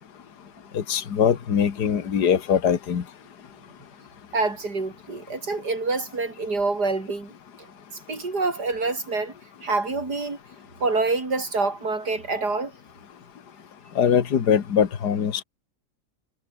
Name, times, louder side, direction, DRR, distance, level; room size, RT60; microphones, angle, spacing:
voice 1, 0.7-3.0 14.0-15.4, left 8 dB, 60° left, 2.2 m, -22 dB
voice 2, 4.3-7.3 7.9-9.3 9.6-10.4 10.8-12.7, right 3 dB, 60° right, 5.2 m, -26 dB
omnidirectional pair, 2.0 m